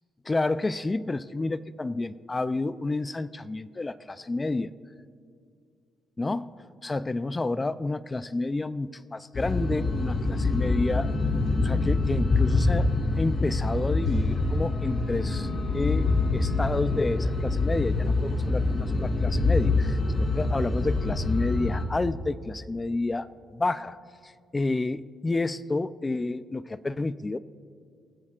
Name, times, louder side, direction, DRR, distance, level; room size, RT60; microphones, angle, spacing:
voice 1, 0.3-4.7 6.2-6.5 6.8-11.1 11.6-12.9 13.2-23.3 23.5-24.0 24.2-27.4, left 2 dB, 20° left, 15 dB, 0.4 m, -30 dB
sound 1, 9.3-21.8, left 3 dB, 50° left, 2.4 m, -25 dB
26.5 x 14.5 x 2.4 m, 2.3 s
cardioid pair, 90°, 0 cm